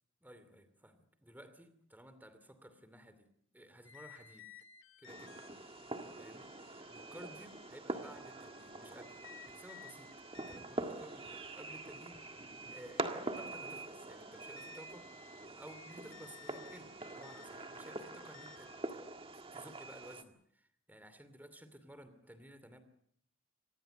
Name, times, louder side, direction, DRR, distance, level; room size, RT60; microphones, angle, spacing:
voice 1, 0.2-4.5 5.0-5.4 6.2-6.5 6.9-9.2 9.5-12.2 12.7-15.1 15.5-19.0 19.5-22.8, equal, 10° right, 11 dB, 2.6 m, -55 dB
sound 1, 3.8-18.8, left 8 dB, 75° left, 1.6 m, -58 dB
Fireworks, 5.1-20.2, right 2 dB, 25° right, 1.7 m, -45 dB
26.0 x 20.0 x 7.9 m, 0.68 s
head